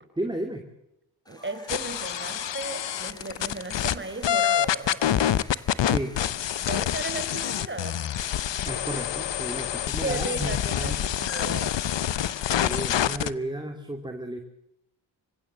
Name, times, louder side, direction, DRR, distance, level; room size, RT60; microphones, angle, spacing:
voice 1, 0.2-0.6 5.8-6.1 8.6-11.0 12.5-14.4, right 1 dB, 10° right, 5 dB, 2.6 m, -33 dB
sound 1, 1.3-11.0, equal, 10° left, 4.4 m, -49 dB
voice 2, 1.3-5.0 6.6-8.0 10.0-11.8, right 2 dB, 25° right, 9 dB, 4.2 m, -35 dB
sound 2, 1.7-4.0 4.2-13.3, left 10 dB, 80° left, 0.9 m, -27 dB
26.0 x 16.0 x 7.5 m, 0.85 s
cardioid pair, 75°, 43 cm